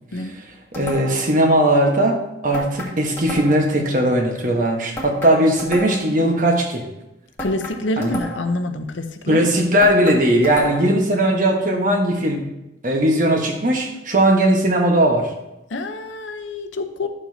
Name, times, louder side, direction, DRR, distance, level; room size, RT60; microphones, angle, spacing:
sound 1, 0.7-1.3 2.5-3.8 5.0-6.2 7.4-8.6 9.8-11.0, equal, 15° left, 1.5 m, -32 dB
voice 1, 0.7-6.9 8.0-8.2 9.3-12.4 12.8-15.3, right 1 dB, 45° right, 2 dB, 1.3 m, -18 dB
voice 2, 7.4-9.5 15.7-17.1, left 2 dB, 90° left, 7 dB, 0.8 m, -26 dB
11.0 x 7.0 x 2.8 m, 0.93 s
head